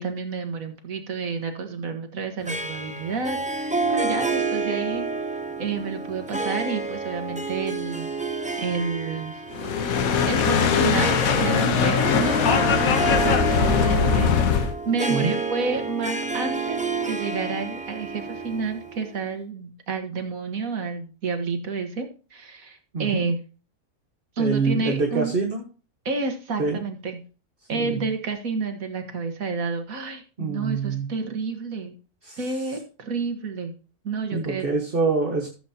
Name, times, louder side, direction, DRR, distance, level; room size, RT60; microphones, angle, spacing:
voice 1, 0.0-5.1 5.6-8.1 8.6-9.4 9.7-12.6 12.9-23.4 24.4-25.3 26.0-27.2 27.7-31.9 32.4-33.7 34.0-34.7, right 4 dB, 65° right, 5 dB, 1.8 m, -30 dB
Harp, 2.5-19.2, right 3 dB, 5° right, 0.6 m, -29 dB
sound 1, 9.5-14.7, left 6 dB, 70° left, 1.3 m, -21 dB
voice 2, 24.4-25.6 26.6-26.8 27.7-28.0 30.4-31.1 32.2-32.4 34.3-35.5, right 4 dB, 40° right, 2 dB, 1.5 m, -25 dB
15.0 x 7.8 x 2.8 m, 0.36 s
omnidirectional pair, 1.6 m